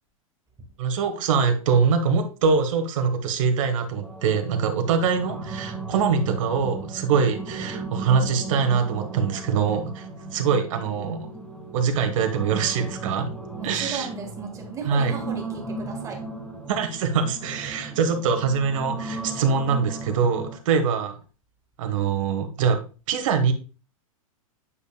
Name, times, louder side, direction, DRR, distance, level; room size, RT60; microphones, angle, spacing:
voice 1, 0.8-10.1 10.3-11.2 11.7-13.3 13.6-14.1 14.9-15.1 16.7-21.1 21.8-22.8 23.1-23.5, right 6 dB, 65° right, 7 dB, 1.2 m, -23 dB
sound 1, 4.0-20.6, right 3 dB, 5° left, 2.0 m, -36 dB
voice 2, 13.6-16.2, right 4 dB, 15° right, 2 dB, 1.8 m, -36 dB
8.4 x 5.3 x 2.3 m, 0.34 s
hypercardioid pair, 125°, 18 cm